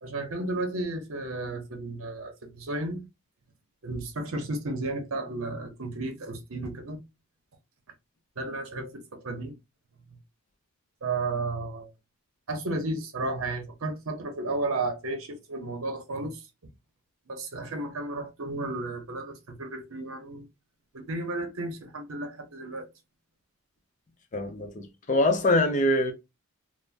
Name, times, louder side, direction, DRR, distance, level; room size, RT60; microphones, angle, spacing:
voice 1, 0.0-3.0 3.8-7.0 8.4-9.5 11.0-11.9 12.5-16.4 17.3-20.4 20.9-22.9, right 2 dB, 70° right, 0.7 m, -33 dB
voice 2, 24.3-26.1, left 1 dB, 35° left, 0.5 m, -24 dB
3.3 x 2.0 x 2.5 m
head